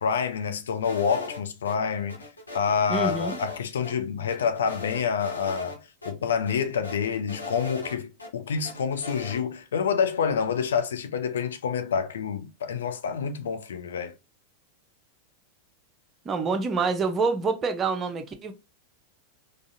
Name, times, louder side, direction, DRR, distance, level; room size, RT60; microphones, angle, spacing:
voice 1, 0.0-2.2 2.5-5.8 6.1-14.1, left 6 dB, 65° left, 0.4 m, -27 dB
sound 1, 0.8-1.8 2.1-3.6 3.8-3.9 4.3-5.8 6.0-6.1 6.5-8.3 8.6-9.4, left 2 dB, 80° left, 0.8 m, -39 dB
voice 2, 2.9-3.4 16.3-18.5, right 4 dB, 25° right, 0.6 m, -26 dB
3.8 x 2.4 x 2.5 m
figure-of-eight pair, 90°, 0 cm